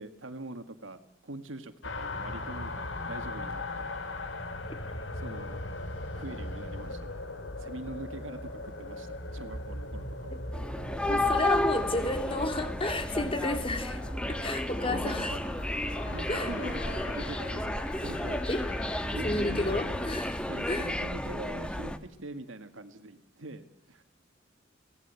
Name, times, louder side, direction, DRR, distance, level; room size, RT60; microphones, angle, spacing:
voice 1, 0.0-3.9 5.1-5.6 6.1-7.2 7.6-10.4 14.9-15.4 16.1-18.4 19.1-19.9 20.4-24.0, right 2 dB, 80° right, 9 dB, 1.9 m, -43 dB
sound 1, 1.8-20.2, left 2 dB, 65° left, 2.9 m, -39 dB
sound 2, 10.5-22.0, left 1 dB, 5° left, 1.3 m, -32 dB
voice 2, 11.1-14.0 14.3-15.3 16.3-16.8 18.5-18.6 19.2-20.9, left 1 dB, 30° left, 7 dB, 2.8 m, -32 dB
23.5 x 17.5 x 8.3 m, 0.84 s
head